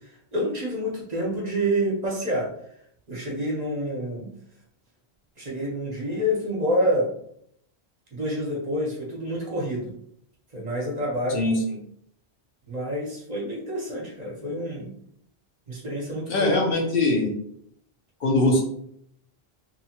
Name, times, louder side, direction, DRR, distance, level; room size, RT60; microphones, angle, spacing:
voice 1, 0.0-2.5 3.1-4.3 5.4-7.1 8.1-9.9 10.5-11.4 12.7-14.9 15.7-16.7, equal, 45° right, -4 dB, 0.9 m, -28 dB
voice 2, 16.3-17.3 18.2-18.6, left 2 dB, 65° left, 0 dB, 0.8 m, -21 dB
2.8 x 2.2 x 2.8 m, 0.69 s
omnidirectional pair, 1.1 m